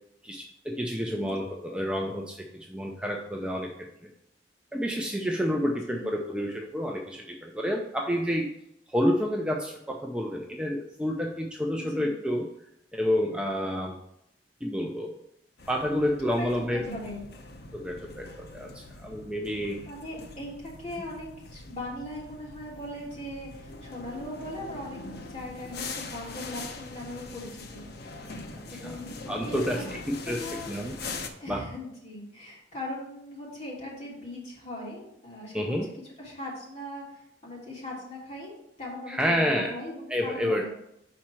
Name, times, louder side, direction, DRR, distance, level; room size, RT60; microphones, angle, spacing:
voice 1, 0.2-4.1 4.7-8.5 8.9-12.5 12.9-14.0 14.6-15.1 15.7-16.8 17.7-19.8 28.8-29.0 29.3-30.9 31.5-31.6 35.5-35.9 39.1-39.7 40.1-40.7, equal, 5° right, 0 dB, 0.5 m, -29 dB
voice 2, 5.6-6.1 11.7-12.1 15.8-16.1 16.4-17.2 19.8-25.0 25.3-28.4 28.6-29.1 29.4-29.8 30.2-30.7 31.4-35.9 36.2-38.5 38.8-40.7, left 1 dB, 40° left, -6 dB, 3.1 m, -39 dB
sound 1, 15.6-31.3, left 3 dB, 60° left, 0.8 m, -42 dB
5.8 x 4.3 x 6.0 m, 0.78 s
head